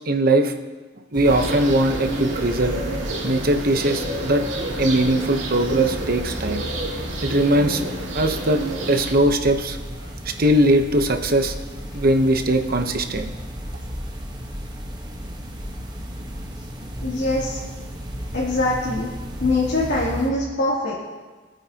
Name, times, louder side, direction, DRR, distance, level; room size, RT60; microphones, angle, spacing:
voice 1, 0.1-0.5 1.1-2.7 3.2-4.4 4.8-6.7 7.2-7.8 8.1-8.6 8.9-9.8 10.2-11.5 11.9-13.3, right 1 dB, 50° right, 5 dB, 1.0 m, -20 dB
sound 1, 1.1-20.3, equal, 25° right, 1.4 m, -34 dB
sound 2, 1.2-9.1, right 2 dB, 80° right, 2.3 m, -30 dB
voice 2, 17.0-17.6 18.3-19.1 19.4-20.9, left 2 dB, 70° left, -10 dB, 3.0 m, -23 dB
24.5 x 9.3 x 3.0 m, 1.3 s
head